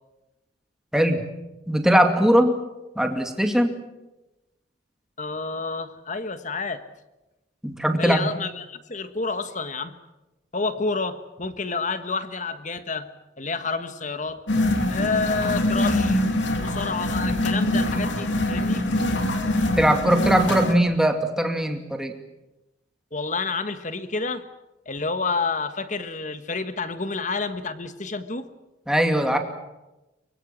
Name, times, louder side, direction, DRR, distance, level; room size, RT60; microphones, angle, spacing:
voice 1, 0.9-1.2 1.7-2.6 3.0-3.8 7.6-8.3 19.8-22.1 28.9-29.4, equal, 5° right, 5 dB, 2.3 m, -20 dB
voice 2, 5.2-6.8 8.0-9.9 10.5-13.1 13.4-14.4 14.9-16.2 16.5-18.8 23.1-24.4 24.8-28.5, left 4 dB, 40° left, 10 dB, 1.5 m, -29 dB
sound 1, 14.5-20.7, left 1 dB, 75° left, 3.0 m, -24 dB
24.0 x 23.0 x 7.5 m, 1.0 s
head